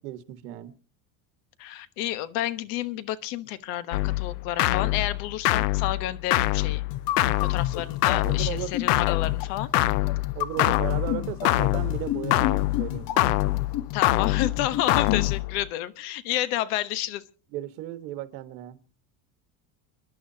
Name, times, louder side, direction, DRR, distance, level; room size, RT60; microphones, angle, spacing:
voice 1, 0.0-0.7 8.2-8.7 10.3-13.3 17.5-18.8, right 14 dB, 85° right, 10 dB, 1.6 m, -35 dB
voice 2, 1.6-6.8 7.4-9.7 10.6-10.8 13.9-17.2, left 13 dB, 75° left, 14 dB, 1.2 m, -30 dB
sound 1, 3.9-15.7, left 18 dB, 90° left, 0.7 m, -25 dB
sound 2, 6.9-15.4, left 13 dB, 50° left, 1.2 m, -32 dB
30.0 x 11.0 x 2.8 m, 0.36 s
cardioid pair, 150°, 46 cm